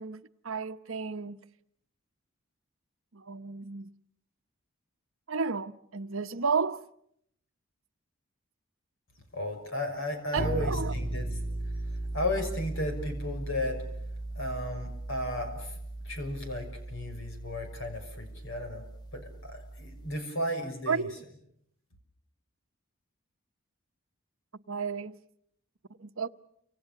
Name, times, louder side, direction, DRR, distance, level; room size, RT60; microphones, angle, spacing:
voice 1, 0.0-1.4 3.1-3.9 5.3-6.8 10.3-10.9 20.9-21.1 24.7-25.1 26.0-26.3, right 5 dB, 65° right, 1.0 m, -32 dB
voice 2, 9.3-11.4 12.1-13.8 14.3-15.8 16.0-18.9 19.1-21.1, left 1 dB, 60° left, 6.2 m, -34 dB
sound 1, 10.4-20.2, right 1 dB, 20° left, 1.8 m, -37 dB
29.5 x 27.0 x 6.9 m
head